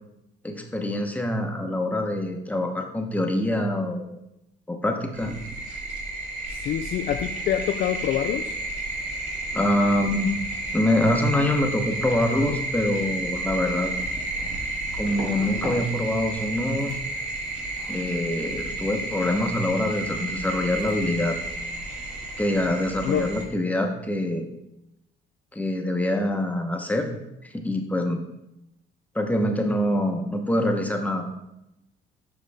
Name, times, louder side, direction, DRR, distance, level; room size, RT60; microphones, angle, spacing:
voice 1, 0.4-4.2 4.7-5.3 9.5-10.3 10.7-13.9 14.9-17.0 17.9-21.4 22.4-24.4 25.5-27.1 27.4-28.2 29.1-31.2, left 1 dB, 10° left, 3 dB, 0.9 m, -25 dB
sound 1, 5.1-23.4, right 2 dB, 45° right, 2.0 m, -32 dB
voice 2, 6.5-8.5 23.0-23.3, left 11 dB, 65° left, 6 dB, 0.4 m, -26 dB
sound 2, 15.1-15.8 16.1-16.5 16.8-17.0 19.9-20.0 20.3-20.5 20.8-20.9, right 2 dB, 75° right, 1.9 m, -36 dB
7.5 x 5.3 x 3.5 m, 0.87 s
cardioid pair, 110°, 17 cm